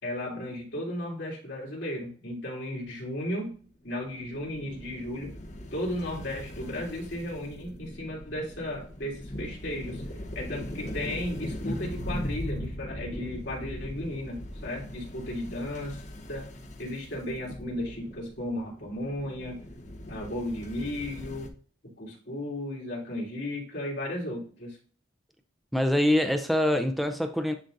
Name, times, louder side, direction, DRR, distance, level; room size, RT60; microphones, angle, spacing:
voice 1, 0.0-3.5 3.8-5.4 5.7-10.0 10.3-16.0 16.3-16.5 16.8-19.6 20.1-21.5 21.8-24.8, left 1 dB, 70° left, -3 dB, 3.1 m, -35 dB
sound 1, 3.9-21.5, equal, 35° left, 0.8 m, -39 dB
voice 2, 25.7-27.5, left 1 dB, ahead, 6 dB, 0.5 m, -24 dB
10.0 x 4.0 x 2.5 m, 0.44 s
head